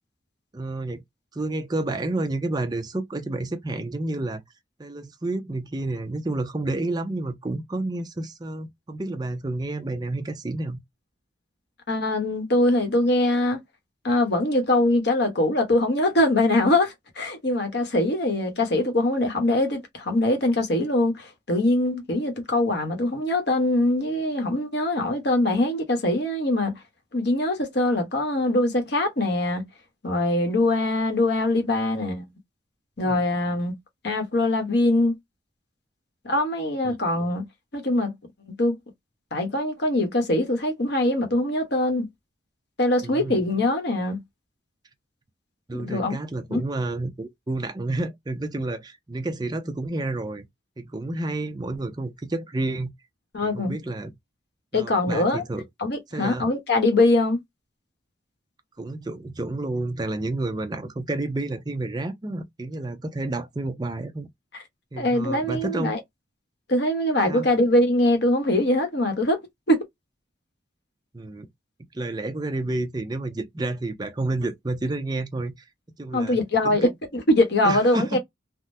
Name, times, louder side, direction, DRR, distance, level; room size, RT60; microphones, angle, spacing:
voice 1, 0.5-1.0 1.3-4.4 4.8-10.8 33.0-33.2 36.8-37.0 43.0-43.4 45.7-50.5 50.8-52.9 53.4-54.1 54.7-55.6 56.1-56.5 58.8-64.3 64.9-65.9 67.3-67.5 71.1-71.5 71.9-75.5 76.0-76.4 76.6-76.9 77.6-78.2, right 2 dB, 20° right, 0.5 m, -30 dB
voice 2, 11.9-13.6 14.0-26.7 27.1-29.7 30.0-32.3 33.0-33.8 34.0-35.1 36.2-37.5 37.7-38.1 38.6-38.8 39.3-42.1 42.8-44.2 45.7-46.2 46.5-46.6 53.3-53.7 54.7-55.4 55.8-57.4 65.0-66.0 66.7-69.4 69.7-69.8 76.1-78.2, left 1 dB, 55° left, 1.0 m, -22 dB
3.5 x 2.1 x 2.6 m
head